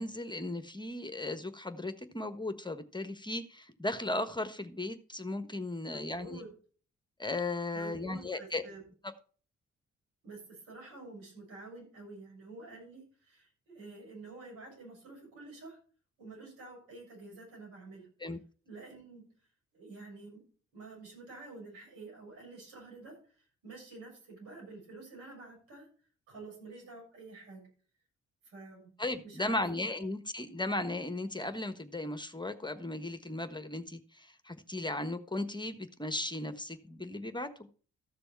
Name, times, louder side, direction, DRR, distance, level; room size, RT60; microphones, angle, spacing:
voice 1, 0.0-6.4 7.2-8.6 18.2-18.4 29.0-37.7, left 2 dB, 15° left, 1.3 m, -36 dB
voice 2, 5.9-6.5 7.7-8.9 10.2-15.8 16.2-18.1 18.6-19.2 19.7-20.4 20.7-23.4 23.6-25.9 26.3-27.7 28.4-28.9 29.2-29.6, right 3 dB, 80° right, 7.2 m, -49 dB
14.0 x 6.9 x 4.5 m
hypercardioid pair, 45°, 32 cm